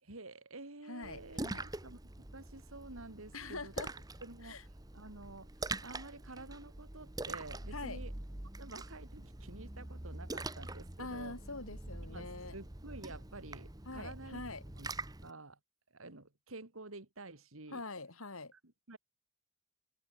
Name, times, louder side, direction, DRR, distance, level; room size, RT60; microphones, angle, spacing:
voice 1, 0.0-3.7 4.2-4.6 4.9-5.5 5.8-8.1 8.6-11.4 12.1-12.3 12.5-14.4 14.8-14.9 15.2-15.6 15.9-17.8 18.5-18.6 18.9-19.0, right 2 dB, 80° right, 2.7 m, -50 dB
voice 2, 0.9-1.7 3.3-3.9 4.4-4.6 7.7-8.0 11.0-12.6 13.9-14.6 17.7-18.5, left 3 dB, 90° left, 4.2 m, -44 dB
Splash splatter, 1.0-15.3, right 2 dB, 20° right, 1.2 m, -44 dB
head